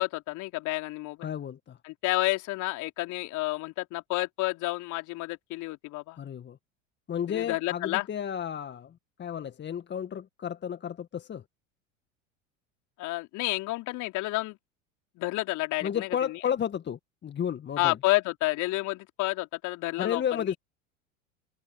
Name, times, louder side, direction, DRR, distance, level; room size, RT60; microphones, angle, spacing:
voice 1, 0.0-1.3 1.8-6.2 7.3-8.1 13.0-14.6 15.2-16.4 17.8-20.5, left 20 dB, 50° left, 3.9 m, -30 dB
voice 2, 1.2-1.8 6.2-6.6 7.1-11.4 15.8-18.0 20.0-20.5, left 9 dB, 30° left, 1.8 m, -32 dB
open air
figure-of-eight pair, 75°, 39 cm